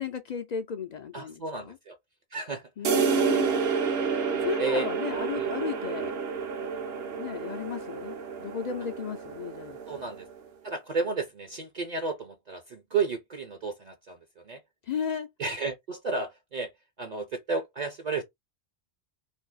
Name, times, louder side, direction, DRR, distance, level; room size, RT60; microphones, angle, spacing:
voice 1, 0.0-1.8 2.8-3.6 4.3-6.1 7.1-9.8 14.9-15.3, left 7 dB, 55° left, 0.5 m, -34 dB
voice 2, 1.1-2.0 2.3-3.9 4.6-4.9 5.4-5.5 6.6-6.7 9.9-10.3 10.6-14.6 15.4-16.7 17.0-18.2, right 4 dB, 45° right, 0.7 m, -33 dB
sound 1, 2.8-10.4, right 6 dB, 70° right, 0.9 m, -29 dB
2.7 x 2.6 x 3.8 m
omnidirectional pair, 1.1 m